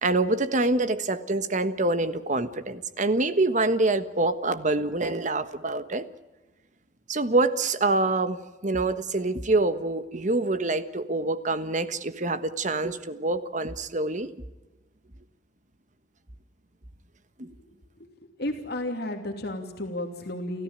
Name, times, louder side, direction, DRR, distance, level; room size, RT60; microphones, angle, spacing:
voice 1, 0.0-6.1 7.1-14.3 17.4-17.5, right 2 dB, 45° right, 11 dB, 1.4 m, -26 dB
voice 2, 18.4-20.6, left 1 dB, 60° left, 3 dB, 2.9 m, -32 dB
30.0 x 14.5 x 8.9 m, 1.1 s
head